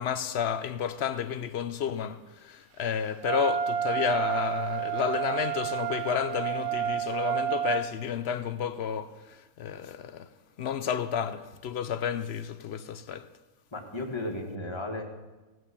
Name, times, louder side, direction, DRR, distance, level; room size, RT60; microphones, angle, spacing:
voice 1, 0.0-10.3 10.6-13.3, left 8 dB, 60° left, 0.6 m, -31 dB
Wind instrument woodwind instrument, 3.2-7.9, right 10 dB, 80° right, 1.2 m, -30 dB
voice 2, 13.7-15.0, left 2 dB, 20° left, 1.7 m, -34 dB
17.0 x 6.2 x 8.4 m
omnidirectional pair, 1.6 m